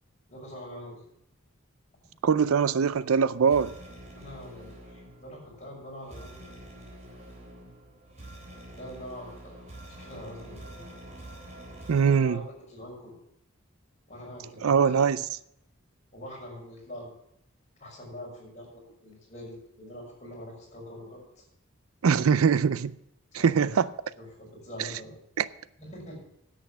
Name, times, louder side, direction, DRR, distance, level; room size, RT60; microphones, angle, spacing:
voice 1, 0.3-1.0 4.1-6.5 8.7-9.6 9.9-10.9 12.2-12.4 12.7-13.1 14.1-15.1 16.1-17.1 17.8-21.4 22.2-22.5 23.3-23.8 24.2-25.2 25.8-26.2, equal, 35° left, 5.8 m, -44 dB
voice 2, 2.2-3.7 11.9-12.4 14.6-15.3 22.0-22.9 23.3-23.9 25.4-25.5, right 6 dB, 80° right, 0.5 m, -22 dB
sound 1, 3.0-12.2, right 1 dB, 35° right, 3.7 m, -47 dB
10.0 x 8.3 x 7.2 m
head